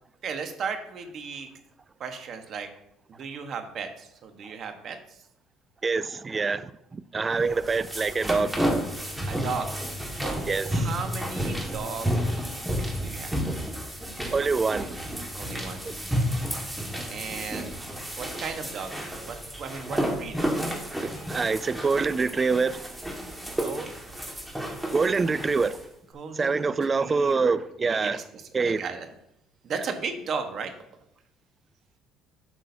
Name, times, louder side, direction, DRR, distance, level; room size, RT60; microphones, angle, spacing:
voice 1, 0.2-1.5 2.0-2.7 3.1-5.2 9.3-10.0 10.7-12.1 12.5-13.3 15.3-15.9 17.1-17.7 18.2-18.9 19.2-20.7 23.6-23.9 26.1-27.6 27.8-29.1 29.6-30.7, right 5 dB, 55° right, 1.3 m, -36 dB
voice 2, 5.8-8.5 10.4-10.8 14.3-15.0 21.0-22.8 24.9-25.7 26.4-28.2 28.5-28.8, right 4 dB, 30° right, 0.4 m, -25 dB
sound 1, 7.4-25.8, equal, 10° right, 1.7 m, -31 dB
10.5 x 6.2 x 2.8 m
supercardioid pair, 80°, 0 cm